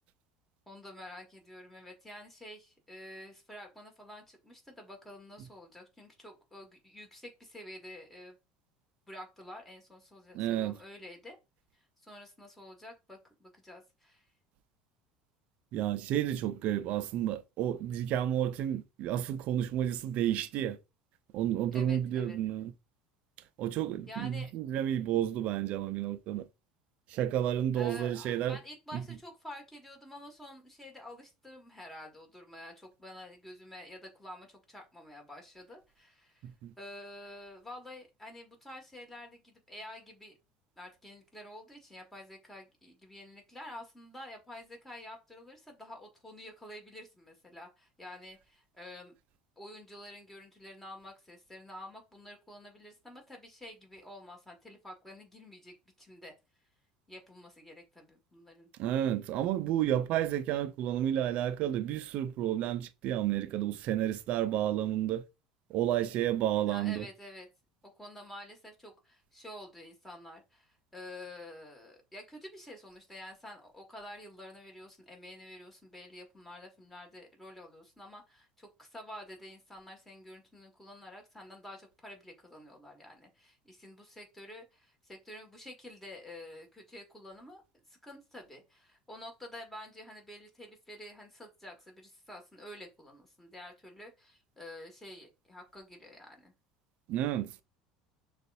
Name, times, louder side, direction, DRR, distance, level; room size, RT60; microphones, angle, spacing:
voice 1, 0.7-8.4 9.1-11.4 11.7-14.3 21.7-22.4 24.1-24.5 27.7-36.5 36.8-40.4 40.8-49.1 49.6-56.3 57.1-58.7 66.6-67.5 68.0-87.6 87.9-96.5, left 1 dB, 10° left, 1.8 m, -49 dB
voice 2, 10.3-10.7 15.7-20.8 21.3-22.7 23.6-26.5 27.1-28.6 28.9-29.0 36.4-36.7 58.8-65.2 65.7-67.1 97.1-97.5, right 11 dB, 55° right, 0.5 m, -31 dB
6.5 x 2.5 x 2.6 m
hypercardioid pair, 75°, 3 cm